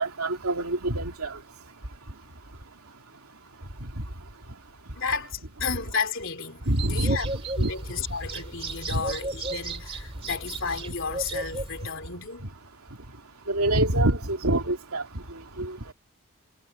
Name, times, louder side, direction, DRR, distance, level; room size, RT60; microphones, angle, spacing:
voice 1, 0.0-1.4 3.8-4.1 4.9-5.0 6.6-7.2 7.6-8.2 8.9-9.1 11.5-11.6 12.4-12.5 13.5-15.9, right 1 dB, 85° right, 2.9 m, -27 dB
voice 2, 5.0-7.3 7.6-12.4, left 5 dB, 60° left, 3.6 m, -32 dB
sound 1, 6.6-11.9, right 3 dB, 25° right, 2.0 m, -35 dB
head